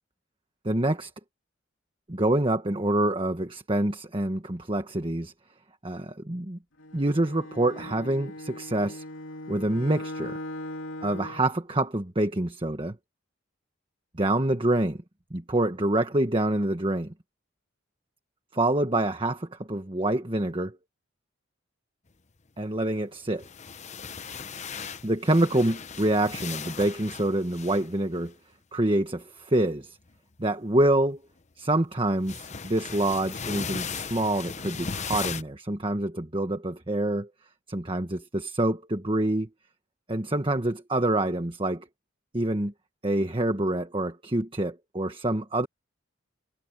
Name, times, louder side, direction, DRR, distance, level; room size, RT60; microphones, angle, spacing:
voice 1, 0.6-1.1 2.1-5.3 5.8-6.6 6.9-9.0 9.5-10.4 11.0-12.9 14.2-15.0 15.3-17.1 18.5-20.8 22.6-23.5 25.0-28.3 28.7-30.0 30.4-31.2 31.6-37.3 37.7-39.5 40.1-41.8 42.3-42.7 43.0-45.7, right 1 dB, 25° right, 1.4 m, -26 dB
Bowed string instrument, 6.8-11.5, left 1 dB, 85° left, 3.2 m, -39 dB
sound 1, 23.3-28.3 30.1-30.3 32.2-35.4, left 6 dB, 35° left, 0.9 m, -37 dB
head